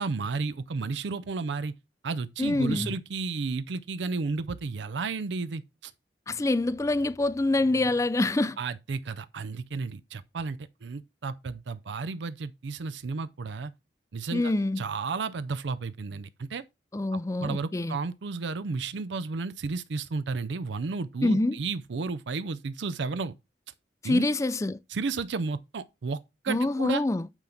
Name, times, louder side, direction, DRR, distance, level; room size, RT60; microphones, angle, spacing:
voice 1, 0.0-1.7 2.0-5.9 8.6-13.7 14.1-16.6 17.1-23.3 24.0-24.3 24.9-26.2 26.4-27.0, right 4 dB, 80° right, 0.5 m, -33 dB
voice 2, 2.4-2.9 6.3-8.6 14.3-14.8 16.9-18.0 21.2-21.6 24.0-24.8 26.5-27.3, left 2 dB, 15° left, 0.4 m, -26 dB
8.9 x 3.9 x 5.8 m
head